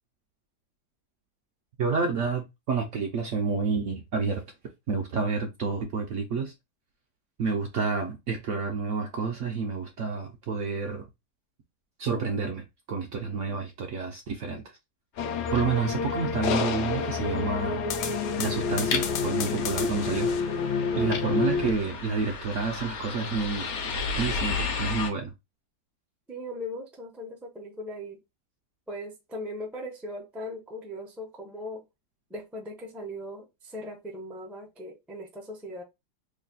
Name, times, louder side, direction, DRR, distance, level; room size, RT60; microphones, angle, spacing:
voice 1, 1.8-4.4 4.9-6.5 7.4-11.0 12.0-14.6 15.5-17.8 18.4-20.4 21.0-23.7 24.2-25.3, right 4 dB, 65° right, 0.7 m, -29 dB
sound 1, 15.2-21.7, left 5 dB, 80° left, 1.1 m, -28 dB
sound 2, 15.2-25.1, left 4 dB, 60° left, 0.8 m, -36 dB
voice 2, 26.3-28.2 28.9-31.8 32.3-35.8, left 1 dB, ahead, 0.4 m, -39 dB
3.2 x 2.2 x 3.9 m
omnidirectional pair, 1.8 m